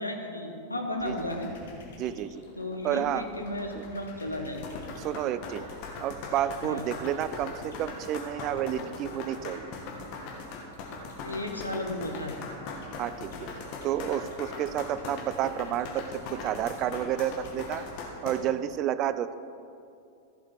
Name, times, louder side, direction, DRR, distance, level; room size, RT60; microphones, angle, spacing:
voice 1, 0.0-1.5 2.6-4.6 6.6-6.8 11.2-12.7, left 1 dB, 85° left, 2 dB, 1.2 m, -34 dB
sound 1, 0.9-17.9, left 3 dB, 60° left, 1.9 m, -50 dB
voice 2, 2.0-2.4 2.8-3.3 3.7-3.9 5.0-5.6 6.0-9.7 13.0-13.5 13.8-17.8 18.2-19.3, right 11 dB, 35° right, 15 dB, 0.4 m, -30 dB
sound 2, 4.5-18.3, left 4 dB, 45° left, 1.8 m, -40 dB
14.5 x 7.4 x 4.4 m, 2.5 s
figure-of-eight pair, 90°, 0 cm